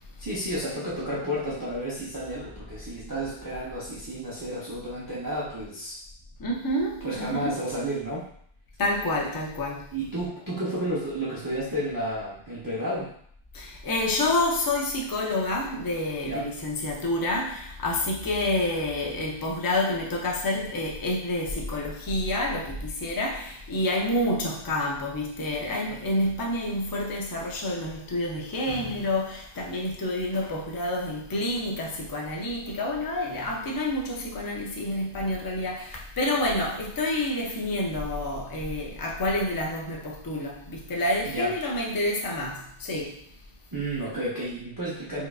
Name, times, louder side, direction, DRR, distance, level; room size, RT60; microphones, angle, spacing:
voice 1, 0.2-6.0 7.0-8.3 9.9-13.1 16.3-16.5 41.3-41.5 43.7-45.3, right 1 dB, 25° right, 0.6 m, -31 dB
voice 2, 6.4-7.5 8.8-9.9 13.5-43.3, left 1 dB, 30° left, 0.4 m, -28 dB
4.3 x 2.5 x 2.3 m
omnidirectional pair, 1.1 m